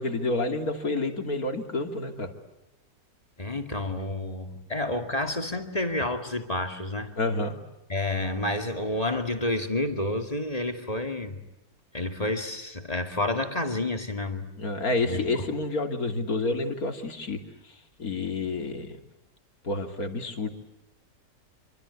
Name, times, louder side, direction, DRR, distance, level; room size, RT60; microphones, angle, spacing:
voice 1, 0.0-2.3 7.2-7.6 14.6-17.4 18.0-19.0 19.6-20.5, left 2 dB, 55° left, 5 dB, 3.2 m, -29 dB
voice 2, 3.4-7.1 7.9-11.4 11.9-14.5 15.0-15.5, left 2 dB, 20° left, 5 dB, 2.4 m, -29 dB
27.0 x 25.0 x 8.4 m, 0.96 s
omnidirectional pair, 1.8 m